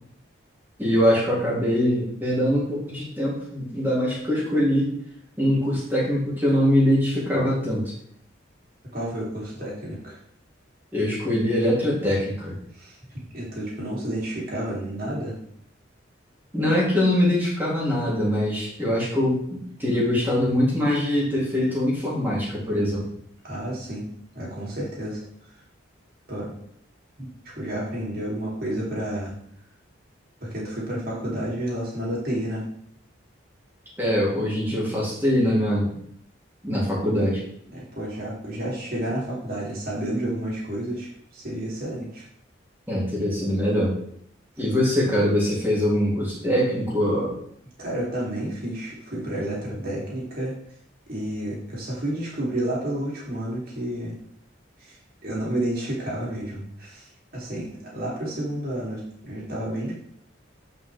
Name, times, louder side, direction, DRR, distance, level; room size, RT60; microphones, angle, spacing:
voice 1, 0.8-4.9 5.4-7.8 10.9-12.5 16.5-23.1 34.0-35.9 36.6-37.4 42.9-43.9 44.6-47.3, equal, 10° right, -6 dB, 2.9 m, -23 dB
voice 2, 8.9-10.2 12.7-15.4 23.4-24.0 24.3-25.2 26.3-26.5 27.2-27.3 27.6-29.3 30.4-32.7 37.7-41.1 41.3-42.2 47.8-50.6 51.1-54.1 54.8-59.9, right 1 dB, 45° right, -5 dB, 2.9 m, -30 dB
9.4 x 5.5 x 3.4 m, 0.67 s
head